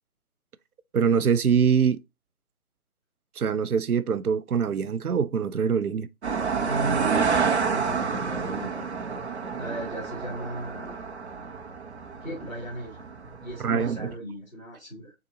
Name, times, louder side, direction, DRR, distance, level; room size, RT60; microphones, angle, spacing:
voice 1, 0.9-2.0 3.4-6.1 13.6-14.1, right 6 dB, 85° right, 0.7 m, -24 dB
sound 1, 6.2-14.1, right 5 dB, 50° right, 1.1 m, -29 dB
voice 2, 6.6-8.9 9.6-10.9 12.2-13.0 13.4-15.1, right 1 dB, 5° right, 0.8 m, -36 dB
7.1 x 2.7 x 2.8 m
figure-of-eight pair, 155°, 43 cm